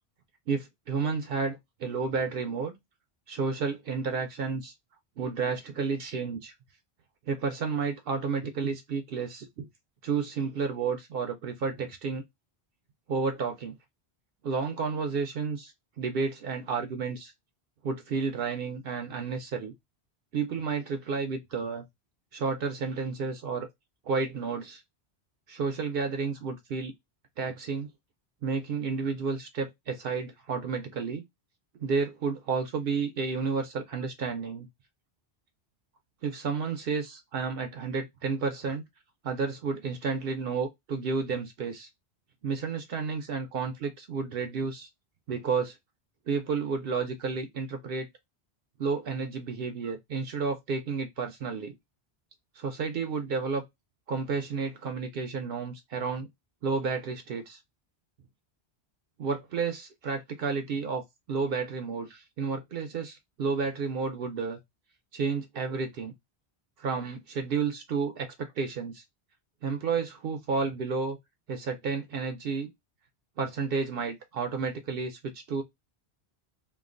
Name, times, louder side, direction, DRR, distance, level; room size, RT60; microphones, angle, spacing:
voice 1, 0.5-2.8 3.3-4.7 5.2-6.5 7.3-9.7 10.0-12.2 13.1-13.7 14.4-17.3 17.8-19.7 20.3-21.8 22.3-23.7 24.0-24.8 25.5-26.9 27.4-27.9 28.4-31.2 31.8-34.7 36.2-38.8 39.2-41.9 42.4-44.9 45.3-45.8 46.3-48.1 48.8-51.7 52.6-53.6 54.1-56.3 56.6-57.6 59.2-64.6 65.1-66.1 66.8-69.0 69.6-71.2 71.5-72.7 73.4-75.6, right 5 dB, 70° right, 0.7 m, -31 dB
3.0 x 2.2 x 2.4 m
omnidirectional pair, 1.0 m